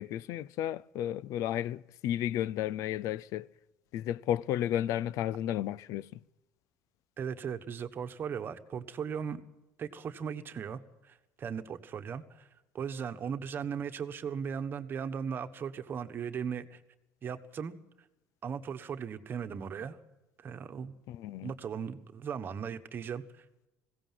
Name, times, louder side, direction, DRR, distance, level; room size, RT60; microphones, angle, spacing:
voice 1, 0.0-3.5 3.9-6.2 21.1-21.5, left 11 dB, 65° left, 0.6 m, -33 dB
voice 2, 7.2-9.4 9.8-10.8 11.1-12.5 12.7-16.8 17.2-17.8 18.4-20.0 20.4-20.9 21.4-23.4, right 7 dB, 35° right, 1.3 m, -37 dB
20.5 x 17.0 x 7.6 m
cardioid pair, 135°, 6 cm